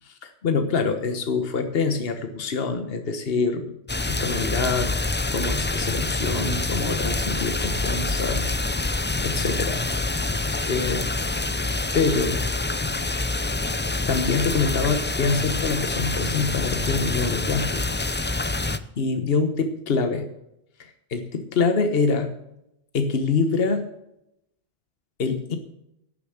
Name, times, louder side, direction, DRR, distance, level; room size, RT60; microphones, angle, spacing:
voice 1, 0.1-3.7 4.1-4.9 5.3-8.5 8.8-9.8 10.7-11.0 11.9-12.4 13.0-13.2 14.1-17.8 19.0-20.3 21.1-22.3 22.9-23.8 25.2-25.6, left 4 dB, 70° left, 7 dB, 1.3 m, -25 dB
sound 1, 3.9-18.8, left 2 dB, 15° left, 0.4 m, -26 dB
11.5 x 7.0 x 7.7 m, 0.84 s
omnidirectional pair, 1.0 m